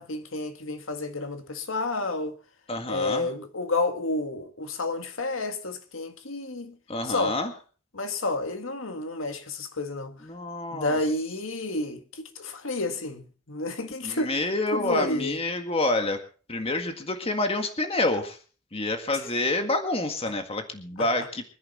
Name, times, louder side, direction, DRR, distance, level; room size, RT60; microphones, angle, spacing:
voice 1, 0.0-2.4 2.9-6.8 7.1-7.4 7.9-10.2 10.7-14.3 14.7-15.4, left 2 dB, 85° left, 1.8 m, -30 dB
voice 2, 2.7-3.3 6.9-7.5 10.2-11.0 14.0-16.2 16.5-18.4 18.7-21.4, left 2 dB, 30° left, 1.8 m, -28 dB
23.5 x 10.5 x 4.3 m
head